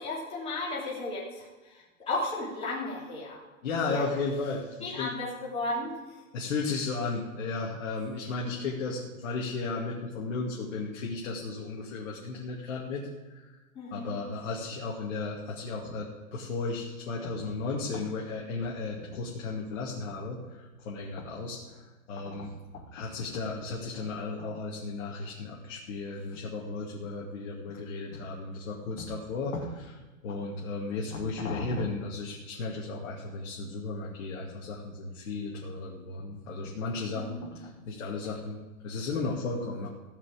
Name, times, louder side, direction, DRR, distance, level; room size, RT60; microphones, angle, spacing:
voice 1, 0.0-3.4 3.9-4.0 4.8-5.9 13.7-14.1 37.1-37.4, left 2 dB, 15° left, -6 dB, 2.9 m, -34 dB
voice 2, 3.6-5.1 6.3-13.6 13.9-21.8 22.1-39.9, left 3 dB, 60° left, -3 dB, 2.4 m, -35 dB
16.0 x 5.5 x 8.4 m, 1.2 s
hypercardioid pair, 165°, 42 cm